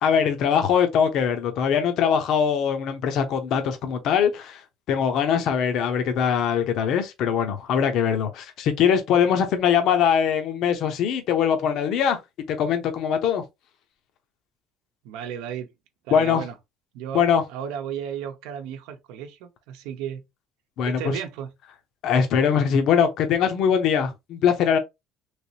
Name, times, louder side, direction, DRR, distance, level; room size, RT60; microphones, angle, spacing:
voice 1, 0.0-4.6 4.9-12.2 12.5-13.4 16.1-16.4 17.1-17.4 20.8-21.1 22.0-24.8, left 7 dB, 55° left, 0.7 m, -22 dB
voice 2, 15.0-15.7 16.1-16.5 16.9-17.2 17.5-20.2 20.8-21.5, right 8 dB, 85° right, 0.7 m, -34 dB
3.2 x 3.1 x 2.7 m
cardioid pair, 160°, 0 cm